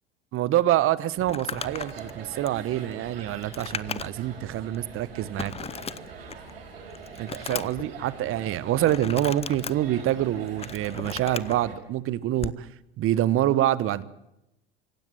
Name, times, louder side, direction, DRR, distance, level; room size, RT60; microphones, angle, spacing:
voice 1, 0.3-5.7 7.2-12.7 13.0-14.0, right 13 dB, 45° right, 18 dB, 1.2 m, -26 dB
Crumpling crinkling, 1.2-4.3 4.7-4.8 5.4-6.5 6.9-7.9 8.8-9.7 10.3-11.6 12.3-12.6, left 6 dB, 20° left, 0.8 m, -36 dB
sound 1, 1.5-11.7, right 5 dB, 75° right, 5.7 m, -43 dB
25.5 x 16.0 x 9.8 m, 0.90 s
figure-of-eight pair, 70°, 30 cm